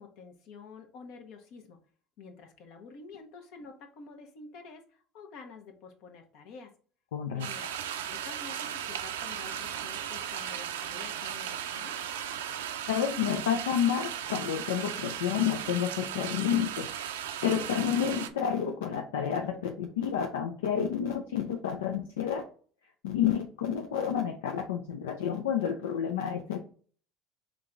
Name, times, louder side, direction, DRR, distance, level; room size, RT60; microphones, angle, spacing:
voice 1, 0.0-1.8 2.2-6.7 7.3-7.6 8.0-12.0, left 4 dB, 65° left, 5 dB, 1.1 m, -49 dB
voice 2, 7.1-7.8 12.9-16.9 17.4-22.4 23.0-26.6, left 8 dB, 85° left, 4 dB, 0.5 m, -30 dB
sound 1, 7.4-18.3, right 9 dB, 85° right, 0.5 m, -36 dB
3.7 x 3.5 x 3.7 m, 0.43 s
hypercardioid pair, 80°, 0 cm